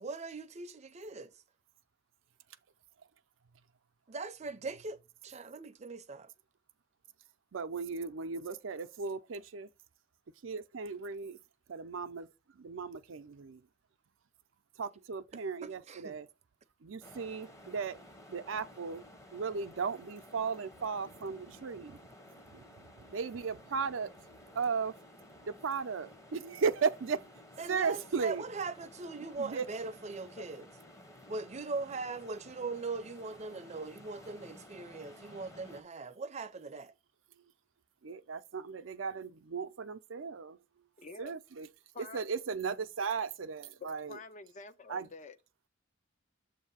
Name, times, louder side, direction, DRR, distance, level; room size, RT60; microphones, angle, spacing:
voice 1, 0.0-1.3 4.1-6.3 15.6-16.2 27.6-30.7 31.3-36.9, right 3 dB, 35° right, 0.6 m, -40 dB
voice 2, 7.5-9.7 10.4-11.4 11.7-12.3 12.5-13.6 14.8-16.3 16.8-18.0 18.3-22.1 22.5-24.1 24.5-24.9 25.5-27.2 27.7-28.4 29.4-29.7 38.0-40.6 41.2-41.7 42.0-44.2 44.9-45.1, right 5 dB, 85° right, 0.5 m, -36 dB
sound 1, 17.0-35.8, left 1 dB, 15° left, 0.8 m, -55 dB
voice 3, 41.0-41.3 41.9-42.2 43.8-45.4, left 4 dB, 40° left, 0.5 m, -48 dB
7.2 x 2.7 x 5.5 m
head